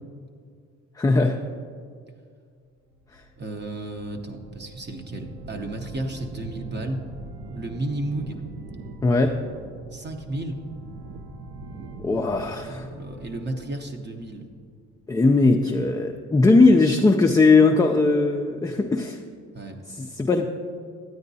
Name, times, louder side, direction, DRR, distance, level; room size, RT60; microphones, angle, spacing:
voice 1, 1.0-1.4 3.1-3.2 9.0-9.4 12.0-12.9 15.1-19.2 20.0-20.5, left 3 dB, 15° left, 2 dB, 0.3 m, -19 dB
sound 1, 2.9-15.0, right 2 dB, 75° right, 0.6 m, -42 dB
voice 2, 3.4-7.1 7.5-8.4 9.9-10.6 12.5-14.5 19.5-19.8, right 1 dB, 35° right, 3 dB, 0.8 m, -33 dB
9.4 x 8.9 x 2.7 m, 2.1 s
cardioid pair, 90°, 30 cm